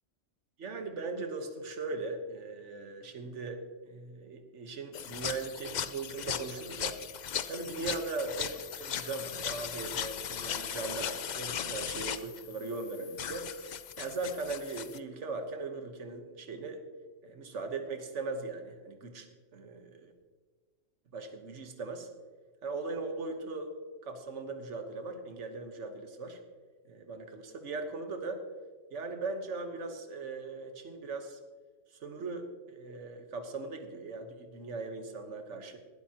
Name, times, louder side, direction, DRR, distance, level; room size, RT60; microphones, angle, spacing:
voice 1, 0.6-7.0 7.5-13.5 14.0-16.8 17.2-19.3 19.5-20.1 21.1-22.1 22.6-23.7 24.0-26.4 26.8-28.4 28.9-31.4 31.9-35.8, right 3 dB, 70° right, 6 dB, 1.5 m, -39 dB
sound 1, 4.9-15.0, left 8 dB, 55° left, 0.5 m, -38 dB
19.0 x 12.0 x 2.9 m, 1.4 s
omnidirectional pair, 1.3 m